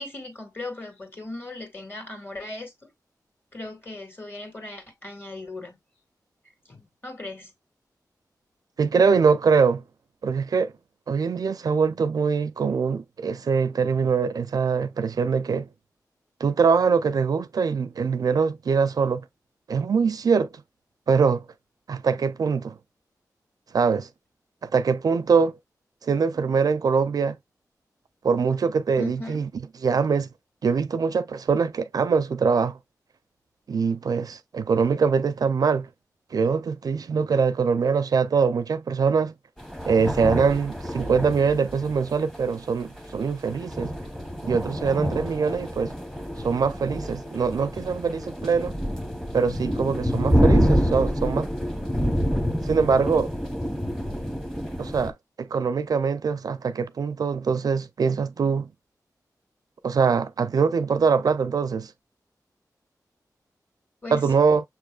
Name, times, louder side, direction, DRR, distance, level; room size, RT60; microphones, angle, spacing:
voice 1, 0.0-2.9 3.5-5.8 6.7-7.5 29.0-29.5 64.0-64.3, left 2 dB, 30° left, 2.0 m, -38 dB
voice 2, 8.8-9.8 10.2-10.7 11.1-15.7 16.4-19.2 19.7-20.5 21.1-21.4 21.9-22.8 23.7-24.1 24.6-25.6 26.0-27.4 28.2-29.5 29.8-30.3 30.6-32.8 33.7-35.9 36.3-39.3 39.9-44.0 44.4-45.9 46.4-48.7 49.3-51.5 52.6-53.3 54.8-58.7 59.8-61.9 64.1-64.6, right 5 dB, 65° right, 0.4 m, -23 dB
sound 1, 39.6-55.1, equal, 5° left, 1.0 m, -27 dB
6.8 x 3.1 x 2.3 m
wide cardioid pair, 100°, 7 cm